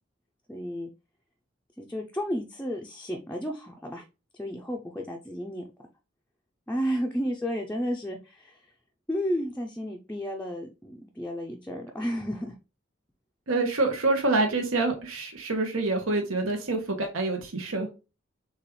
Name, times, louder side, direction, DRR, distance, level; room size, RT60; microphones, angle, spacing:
voice 1, 0.5-0.9 1.8-4.1 4.3-5.6 6.7-8.7 9.1-12.5, equal, 5° left, 0 dB, 0.5 m, -32 dB
voice 2, 13.5-17.9, right 2 dB, 80° right, 3 dB, 1.0 m, -26 dB
6.7 x 2.4 x 3.1 m, 0.29 s
head